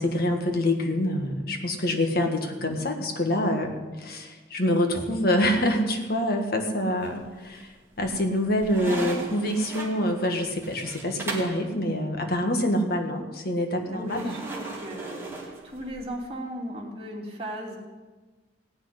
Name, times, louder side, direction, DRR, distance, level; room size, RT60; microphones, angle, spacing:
voice 1, 0.0-14.3, left 1 dB, 55° left, 3 dB, 1.8 m, -26 dB
sound 1, 7.0-7.5 8.0-11.6 14.1-16.1, right 2 dB, 15° right, 2.4 m, -37 dB
voice 2, 13.8-17.8, equal, 35° right, -2 dB, 3.0 m, -36 dB
17.0 x 6.6 x 9.8 m, 1.3 s
head